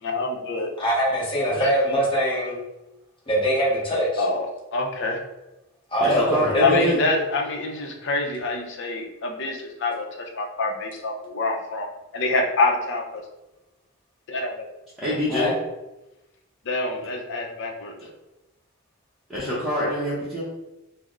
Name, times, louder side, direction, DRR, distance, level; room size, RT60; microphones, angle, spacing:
voice 1, 0.0-0.7 1.5-1.7 4.2-5.2 6.6-11.9 12.1-13.2 14.3-14.7 16.6-17.9, left 3 dB, 60° left, 1 dB, 0.6 m, -26 dB
voice 2, 0.8-2.5 3.3-4.2 5.9-6.9 15.3-15.5, equal, 25° left, -6 dB, 1.1 m, -22 dB
voice 3, 6.0-7.0 15.0-15.5 19.3-20.4, equal, ahead, -11 dB, 0.8 m, -25 dB
3.4 x 2.1 x 3.6 m, 0.97 s
head